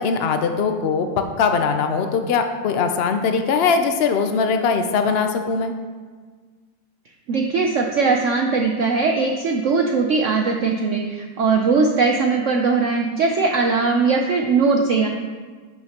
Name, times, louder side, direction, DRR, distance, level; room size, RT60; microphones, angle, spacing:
voice 1, 0.0-5.7, left 5 dB, 85° left, 6 dB, 0.5 m, -21 dB
voice 2, 7.3-15.1, right 4 dB, 65° right, 3 dB, 0.7 m, -20 dB
10.5 x 6.2 x 2.9 m, 1.5 s
omnidirectional pair, 1.9 m